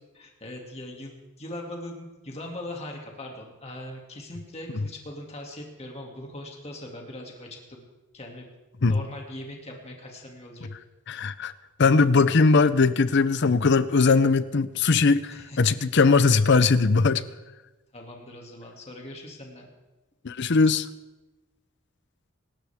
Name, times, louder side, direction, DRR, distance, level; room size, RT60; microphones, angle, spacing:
voice 1, 0.1-7.8 8.1-8.5 8.9-10.7 15.3-15.6 17.9-19.7, left 1 dB, 30° left, 0 dB, 2.5 m, -40 dB
voice 2, 11.1-11.5 11.8-17.2 20.2-20.9, left 4 dB, 55° left, 15 dB, 0.6 m, -20 dB
25.5 x 13.0 x 3.6 m, 1.1 s
head